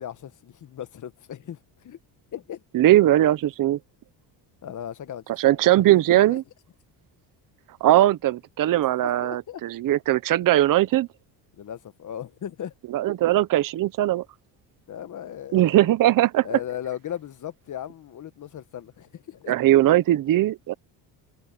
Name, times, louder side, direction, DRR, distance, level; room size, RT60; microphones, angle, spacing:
voice 1, 0.0-2.0 2.3-2.6 4.6-5.4 6.1-6.4 9.0-9.6 11.5-12.7 14.9-15.9 16.4-19.5, left 10 dB, 40° left, 1.2 m, -37 dB
voice 2, 2.7-3.8 5.4-6.4 7.8-11.1 12.9-14.2 15.5-16.5 19.5-20.7, right 14 dB, 50° right, 0.8 m, -20 dB
cardioid pair, 105°, 44 cm